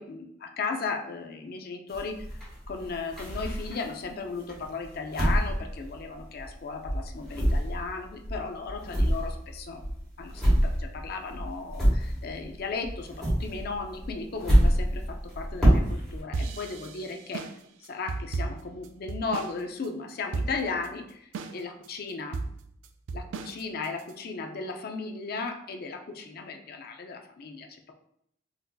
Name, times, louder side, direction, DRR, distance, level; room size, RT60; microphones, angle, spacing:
voice 1, 0.0-2.2 2.7-9.8 10.2-17.5 17.8-22.4 23.1-27.9, left 4 dB, 50° left, 4 dB, 0.4 m, -36 dB
sound 1, 1.9-4.0 4.5-6.6 6.8-12.5 12.8-16.2, equal, ahead, 1.4 m, -26 dB
sound 2, 16.3-19.6 19.8-19.9 20.3-20.9 21.3-21.9 22.3-24.1, right 3 dB, 80° right, 0.3 m, -34 dB
4.0 x 2.6 x 2.2 m, 0.73 s
head